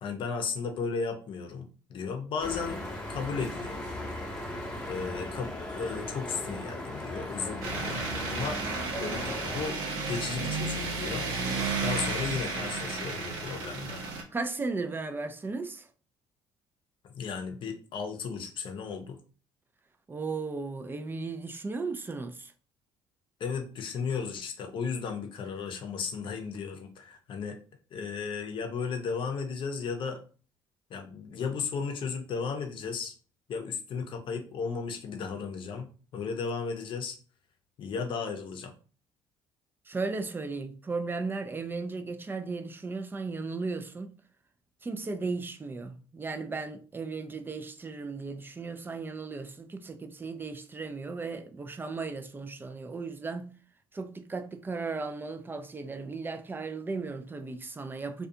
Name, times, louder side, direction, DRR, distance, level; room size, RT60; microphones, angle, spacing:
voice 1, 0.0-2.8 3.1-3.8 4.8-8.6 9.0-11.3 11.8-14.0 17.1-19.2 23.4-27.6 27.9-30.2 30.9-33.1 33.5-37.2 37.8-38.7, left 5 dB, 55° left, 0.6 m, -35 dB
sound 1, 2.4-9.7, left 1 dB, 10° left, 0.8 m, -38 dB
sound 2, 7.6-14.2, right 3 dB, 90° right, 0.6 m, -33 dB
voice 2, 14.3-15.9 20.1-22.5 39.9-44.2 44.8-53.6 53.9-58.3, right 4 dB, 20° right, 0.4 m, -36 dB
2.4 x 2.3 x 2.6 m
supercardioid pair, 75°, 10 cm